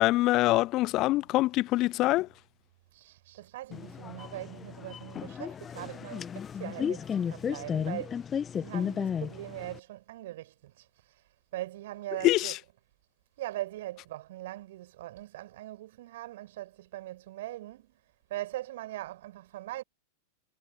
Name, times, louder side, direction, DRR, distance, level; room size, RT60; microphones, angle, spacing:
voice 1, 0.0-2.3 12.2-12.5, left 18 dB, 35° left, 0.7 m, -24 dB
voice 2, 2.9-8.2 8.6-10.9 11.5-12.7 13.4-18.0 18.3-19.8, right 15 dB, 55° right, 5.4 m, -41 dB
sound 1, 3.7-9.8, left 7 dB, 20° left, 1.2 m, -34 dB
figure-of-eight pair, 90°, 0 cm